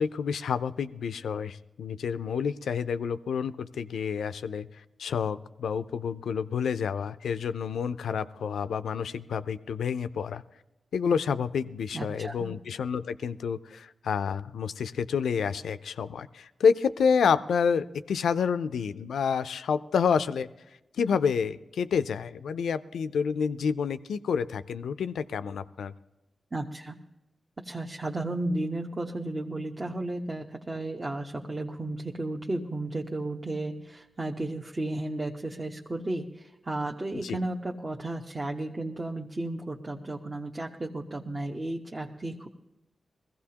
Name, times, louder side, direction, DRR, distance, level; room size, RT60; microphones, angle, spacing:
voice 1, 0.0-4.7 5.0-10.4 10.9-20.5 21.0-25.9 37.2-37.4, left 6 dB, 85° left, 13 dB, 0.4 m, -29 dB
voice 2, 11.9-12.5 26.5-27.0 27.6-42.5, right 2 dB, 35° right, 0 dB, 0.9 m, -34 dB
20.5 x 15.0 x 2.9 m, 0.99 s
supercardioid pair, 40°, 0 cm